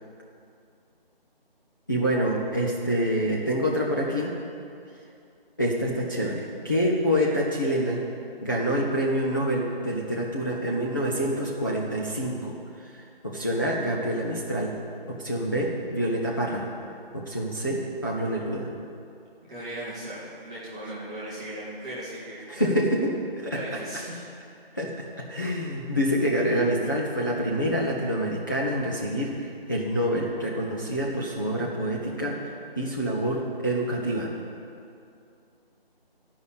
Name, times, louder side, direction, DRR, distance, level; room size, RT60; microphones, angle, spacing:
voice 1, 1.9-4.4 5.6-8.0 8.4-14.7 15.1-16.7 17.1-18.7 22.5-23.6 24.7-32.4 32.8-34.3, equal, 20° left, -5 dB, 0.6 m, -27 dB
voice 2, 19.5-22.7 23.5-24.2, right 1 dB, 5° right, -10 dB, 0.8 m, -37 dB
13.5 x 5.5 x 8.1 m, 2.5 s
figure-of-eight pair, 160°, 30 cm